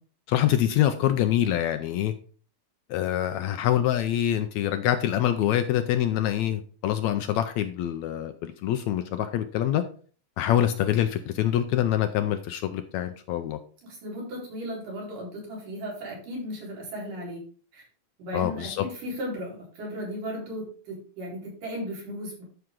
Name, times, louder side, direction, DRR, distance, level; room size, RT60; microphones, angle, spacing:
voice 1, 0.3-2.1 2.9-9.8 10.4-13.6 18.3-18.8, left 11 dB, 80° left, 9 dB, 1.7 m, -25 dB
voice 2, 13.8-17.4 17.7-17.9 18.2-22.4, equal, 85° right, -4 dB, 5.9 m, -36 dB
12.5 x 5.9 x 3.8 m, 0.41 s
omnidirectional pair, 3.7 m